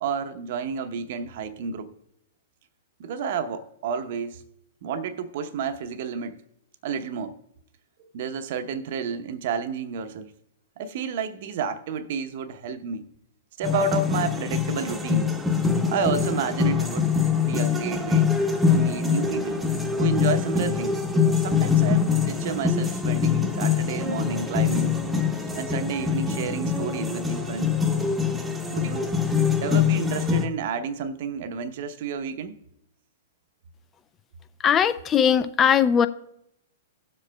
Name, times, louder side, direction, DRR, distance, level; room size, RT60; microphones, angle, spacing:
voice 1, 0.0-1.9 3.0-4.4 4.8-6.4 6.8-7.4 8.1-10.3 10.8-13.1 13.6-15.3 15.9-17.1 17.5-18.3 18.7-19.7 20.0-21.0 21.4-25.0 25.5-27.7 28.7-29.1 29.6-32.6, right 5 dB, 55° right, 0.8 m, -30 dB
sound 1, 13.6-30.5, left 6 dB, 5° right, 1.0 m, -24 dB
voice 2, 34.6-36.1, left 8 dB, 25° left, 0.5 m, -19 dB
17.5 x 7.6 x 2.2 m
figure-of-eight pair, 110°, 0 cm